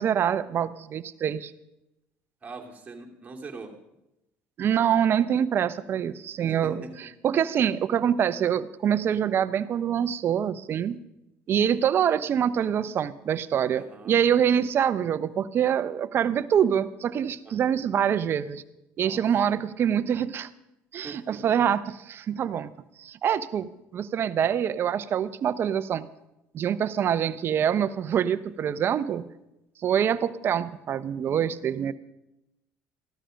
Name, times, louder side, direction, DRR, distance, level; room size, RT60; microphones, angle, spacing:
voice 1, 0.0-1.5 4.6-6.8 7.2-11.0 11.5-18.6 19.0-20.5 20.9-22.7 23.0-26.1 26.5-29.2 29.8-31.9, right 9 dB, 45° right, 14 dB, 0.7 m, -25 dB
voice 2, 2.4-3.7 6.5-7.1 13.7-14.2 17.4-17.6 19.0-19.3 21.0-21.4, right 3 dB, 25° right, 1 dB, 2.6 m, -42 dB
14.0 x 12.5 x 5.1 m, 0.90 s
supercardioid pair, 95°, 5 cm